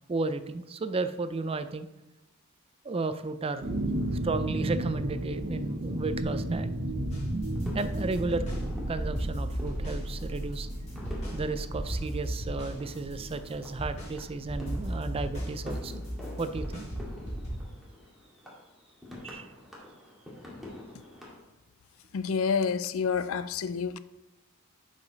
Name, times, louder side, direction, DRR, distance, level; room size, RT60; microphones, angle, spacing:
voice 1, 0.1-1.9 2.8-3.8 4.2-6.7 7.7-8.5 8.9-10.7 11.3-16.0 16.4-16.9 19.2-19.5, right 3 dB, 25° right, 0.4 m, -33 dB
sound 1, 3.6-17.3, right 1 dB, 50° right, 0.9 m, -35 dB
sound 2, 6.5-7.1 7.6-21.4, left 2 dB, ahead, 1.9 m, -47 dB
sound 3, 7.1-8.6 9.0-11.4 11.7-17.5, equal, 35° left, 3.1 m, -36 dB
voice 2, 22.1-24.0, left 6 dB, 70° left, 0.4 m, -28 dB
11.0 x 4.9 x 3.9 m
head